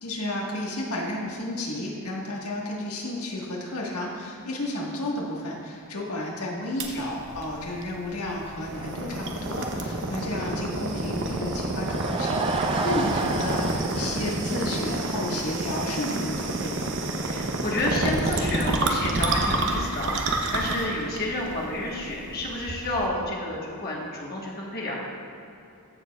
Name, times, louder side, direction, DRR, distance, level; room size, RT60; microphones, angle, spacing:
voice 1, 0.0-16.9, left 1 dB, 75° left, -2 dB, 1.5 m, -32 dB
sound 1, 6.8-23.1, right 2 dB, 55° right, 0.8 m, -29 dB
Laughter / Crowd, 11.7-15.1 15.4-15.5 16.1-16.2 16.3-16.4, right 3 dB, 25° right, 0.5 m, -30 dB
voice 2, 17.3-25.1, left 1 dB, 45° left, -3 dB, 1.3 m, -30 dB
15.0 x 6.7 x 2.3 m, 2.7 s
head